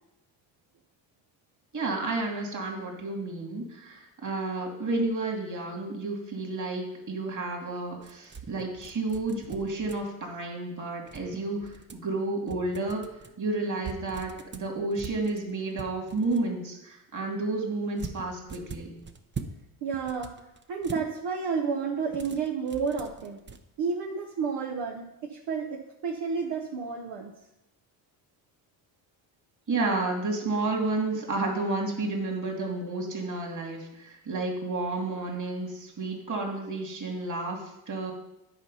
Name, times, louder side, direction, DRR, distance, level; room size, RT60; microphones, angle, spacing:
voice 1, 1.7-18.9 29.7-38.1, right 2 dB, 40° right, 1 dB, 2.5 m, -31 dB
sound 1, 8.0-10.3 11.1-12.1 12.5-13.3 13.8-16.5 18.0-19.6 19.9-21.1 22.1-23.6, right 5 dB, 25° right, 0.8 m, -42 dB
voice 2, 19.8-20.3 20.7-23.4 23.8-27.3, right 5 dB, 65° right, 1 dB, 1.0 m, -31 dB
9.8 x 4.2 x 5.5 m, 0.88 s
supercardioid pair, 70°, 47 cm